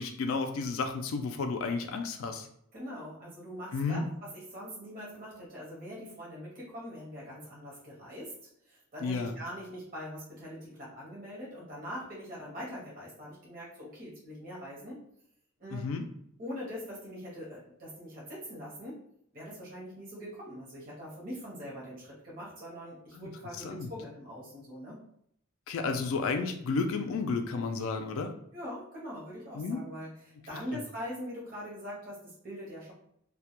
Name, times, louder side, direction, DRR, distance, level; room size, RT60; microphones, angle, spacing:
voice 1, 0.0-2.5 3.7-4.1 9.0-9.3 15.7-16.1 23.1-23.3 23.6-23.9 25.7-28.3 29.5-29.8 30.7-30.8, left 4 dB, 80° left, 6 dB, 0.3 m, -32 dB
voice 2, 2.7-8.3 8.7-15.0 15.6-15.9 16.4-19.0 19.3-25.0 28.5-32.9, equal, 40° right, -6 dB, 0.8 m, -42 dB
2.2 x 2.1 x 2.8 m, 0.70 s
head